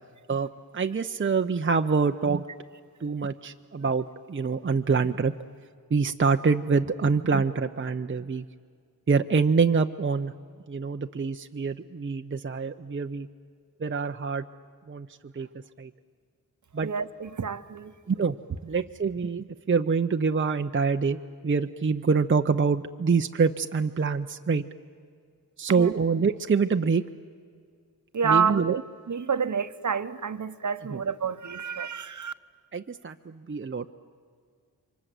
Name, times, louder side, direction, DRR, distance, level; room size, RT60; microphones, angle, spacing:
voice 1, 0.3-2.4 3.0-5.3 5.9-8.5 9.1-10.3 10.7-13.3 13.8-14.5 14.9-15.1 15.3-15.5 15.8-15.9 16.7-16.9 18.1-18.4 18.6-21.2 21.4-24.6 25.6-27.0 28.2-28.8 30.9-31.0 32.7-33.9, right 5 dB, 35° right, 0.7 m, -25 dB
voice 2, 16.8-17.9 25.8-25.9 28.1-28.8 29.1-32.3, right 6 dB, 50° right, 1.0 m, -28 dB
28.0 x 24.0 x 7.7 m
wide cardioid pair, 75°, 36 cm